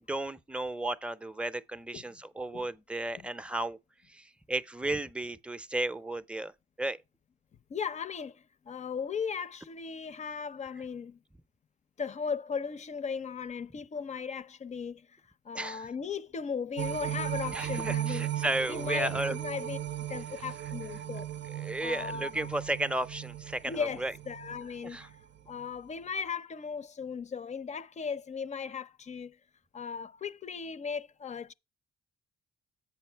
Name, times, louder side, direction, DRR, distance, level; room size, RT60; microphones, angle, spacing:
voice 1, 0.0-3.8 4.1-6.5 6.8-7.0 15.5-15.9 17.5-19.4 21.6-24.1 24.8-25.1, right 1 dB, 5° right, 0.6 m, -34 dB
voice 2, 7.7-11.2 12.0-15.2 15.4-18.3 18.7-19.8 20.1-21.3 21.8-22.5 23.6-25.1 25.5-29.4 29.7-31.5, left 6 dB, 35° left, 0.6 m, -37 dB
sound 1, 16.8-25.2 25.6-25.7, right 11 dB, 65° right, 0.5 m, -37 dB
8.4 x 5.3 x 4.4 m
cardioid pair, 90°, 20 cm